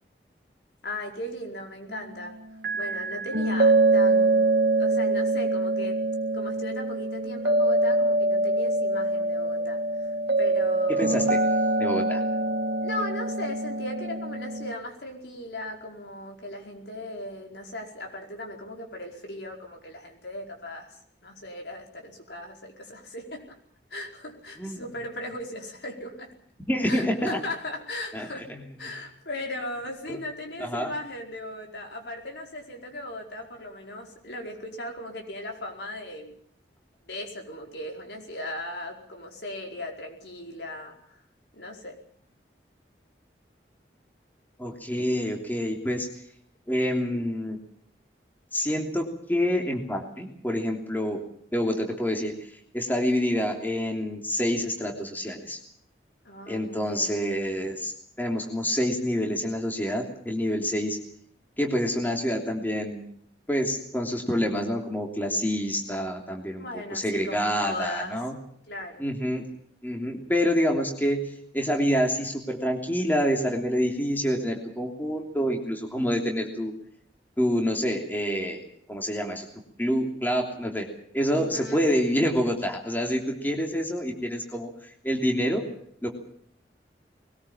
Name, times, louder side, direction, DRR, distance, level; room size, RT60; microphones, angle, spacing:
voice 1, 0.8-2.4 2.7-6.0 6.3-10.1 10.4-11.4 12.8-23.6 23.9-26.3 26.8-28.5 28.8-36.4 37.0-41.2 41.5-42.0 56.2-57.2 66.6-68.1 68.7-69.0 81.3-81.9, left 1 dB, 75° left, 2 dB, 4.8 m, -37 dB
sound 1, 2.6-14.7, right 2 dB, 65° right, 1.3 m, -24 dB
voice 2, 10.9-11.4 11.8-12.2 24.6-24.8 26.7-27.4 28.1-28.6 30.1-30.2 30.6-30.9 44.6-46.1 46.7-47.6 48.5-51.2 51.5-55.6 56.5-57.9 58.2-61.0 61.6-63.0 63.5-66.6 66.9-68.3 69.0-69.4 69.8-71.2 71.5-76.7 77.4-78.6 78.9-79.5 79.8-80.9 81.1-84.7 85.0-85.6 86.0-86.1, equal, 10° left, 2 dB, 3.1 m, -27 dB
21.5 x 19.5 x 7.3 m, 0.64 s
head